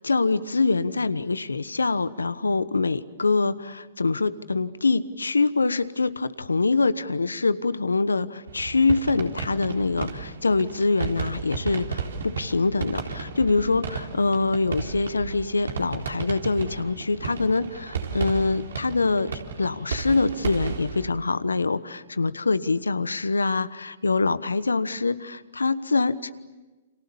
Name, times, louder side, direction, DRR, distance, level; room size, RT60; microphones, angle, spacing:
voice 1, 0.0-26.3, left 3 dB, 90° left, 15 dB, 1.2 m, -24 dB
sound 1, 8.5-21.1, right 5 dB, 70° right, 3.9 m, -34 dB
30.0 x 27.5 x 7.1 m, 1.2 s
hypercardioid pair, 120°, 0 cm